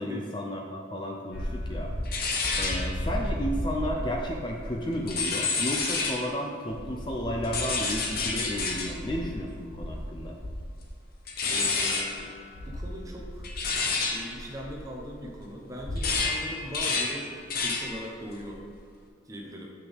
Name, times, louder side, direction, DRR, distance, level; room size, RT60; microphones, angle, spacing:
voice 1, 0.0-1.9 2.6-10.4, equal, 25° left, 0 dB, 0.5 m, -33 dB
sound 1, 1.3-6.3 6.7-15.4 15.7-18.0 18.3-18.7, left 3 dB, 50° left, 0.8 m, -31 dB
voice 2, 11.4-12.3 12.6-13.5 14.0-18.6 19.3-19.7, equal, 15° right, -1 dB, 0.9 m, -40 dB
7.8 x 5.9 x 3.5 m, 2.1 s
head